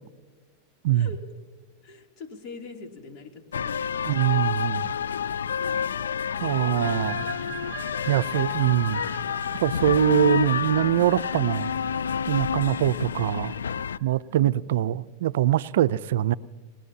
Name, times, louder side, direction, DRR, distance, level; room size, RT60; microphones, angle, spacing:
voice 1, 0.9-1.2 1.8-4.2 5.6-6.0 6.3-6.9 14.3-14.8, left 3 dB, 45° left, 2.8 m, -45 dB
sound 1, 3.5-14.0, left 7 dB, 90° left, 0.4 m, -29 dB
voice 2, 4.1-4.9 6.4-7.2 8.1-9.0 9.6-11.7 12.3-13.5 14.0-16.3, right 13 dB, 75° right, 0.4 m, -23 dB
sound 2, 6.6-14.1, right 12 dB, 30° right, 1.5 m, -45 dB
29.0 x 18.0 x 2.8 m
hypercardioid pair, 105°, 0 cm